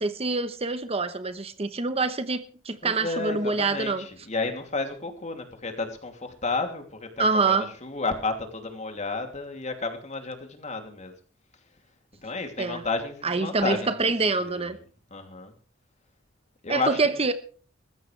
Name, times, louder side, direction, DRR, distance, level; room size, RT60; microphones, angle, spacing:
voice 1, 0.0-4.1 7.2-7.7 12.6-12.8 13.2-14.8 16.7-17.3, right 3 dB, 30° right, 1.0 m, -26 dB
voice 2, 2.8-11.1 12.2-14.1 14.4-14.7 15.1-15.5 16.6-17.0, left 3 dB, 35° left, 2.9 m, -32 dB
20.5 x 15.0 x 3.3 m
head